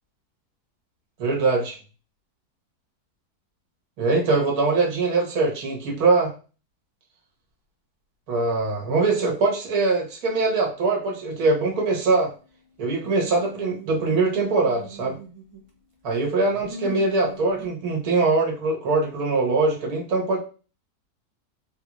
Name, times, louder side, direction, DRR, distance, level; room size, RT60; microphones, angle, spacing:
voice 1, 1.2-1.8 4.0-6.3 8.3-12.3 12.8-15.2 16.0-20.4, right 3 dB, 70° right, -1 dB, 1.5 m, -22 dB
sound 1, 12.9-15.8 16.1-17.7, right 3 dB, 35° right, 0.5 m, -41 dB
3.9 x 2.4 x 3.0 m, 0.35 s
omnidirectional pair, 1.7 m